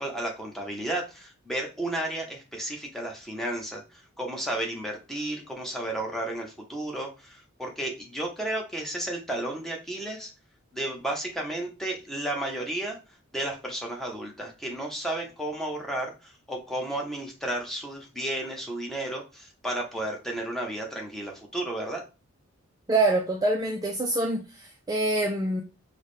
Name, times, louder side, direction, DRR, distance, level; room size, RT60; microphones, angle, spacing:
voice 1, 0.0-10.3 10.7-13.0 13.3-22.0, right 1 dB, ahead, 0.8 m, -33 dB
voice 2, 22.9-25.6, right 2 dB, 20° right, 0.4 m, -25 dB
4.6 x 2.2 x 3.1 m
head